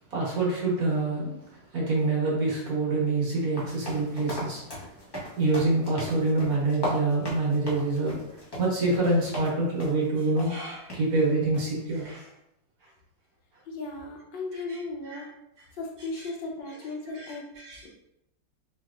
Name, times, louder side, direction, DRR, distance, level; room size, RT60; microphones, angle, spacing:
voice 1, 0.1-4.6 5.4-12.3 14.7-14.8 15.1-15.2 17.1-17.9, right 2 dB, 55° right, -5 dB, 1.6 m, -26 dB
sound 1, 3.6-9.5 9.8-10.1 10.4-10.5 10.9-11.0 11.5-11.8, equal, 35° left, 0.3 m, -37 dB
voice 2, 13.6-15.3 15.7-17.5, left 3 dB, 85° left, 0 dB, 1.5 m, -36 dB
4.4 x 3.3 x 2.4 m, 0.82 s
omnidirectional pair, 2.0 m